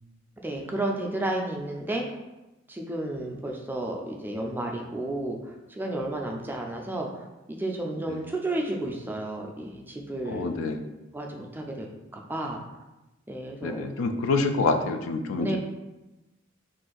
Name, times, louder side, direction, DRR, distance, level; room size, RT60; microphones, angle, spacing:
voice 1, 0.4-2.0 2.7-7.1 7.5-10.5 11.1-11.9 12.1-12.6 13.3-13.9 15.4-15.6, right 1 dB, 10° right, 0 dB, 0.3 m, -32 dB
voice 2, 10.3-10.9 13.6-15.6, left 3 dB, 90° left, 6 dB, 0.3 m, -27 dB
2.5 x 2.4 x 3.8 m, 1.0 s
head